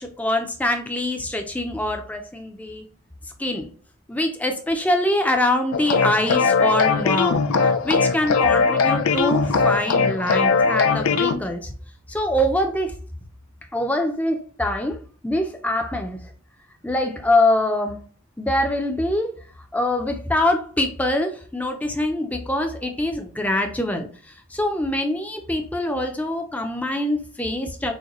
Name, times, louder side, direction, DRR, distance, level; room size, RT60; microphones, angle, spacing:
voice 1, 0.0-2.9 3.4-3.7 4.1-11.7 12.1-13.0 13.7-15.0 15.2-16.2 16.8-18.0 18.4-19.3 19.7-24.1 24.5-27.9, left 1 dB, 5° left, 4 dB, 0.5 m, -24 dB
sound 1, 5.7-11.4, left 5 dB, 85° left, 0.5 m, -20 dB
6.3 x 2.3 x 2.9 m, 0.43 s
head